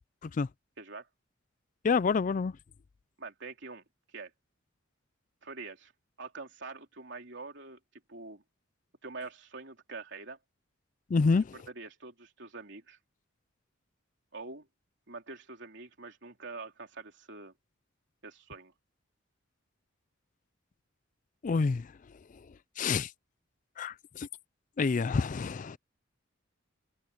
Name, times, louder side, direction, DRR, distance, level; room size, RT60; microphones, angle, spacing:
voice 1, 1.8-2.6 11.1-11.5 21.4-21.9 22.8-23.1 23.8-24.3 24.8-25.8, left 4 dB, 40° left, 0.4 m, -28 dB
voice 2, 3.2-3.8 4.1-4.3 5.4-5.9 6.2-7.8 8.1-8.4 9.0-10.4 11.5-13.0 14.3-14.7 15.1-17.5 18.2-18.7, right 3 dB, 60° right, 3.5 m, -45 dB
head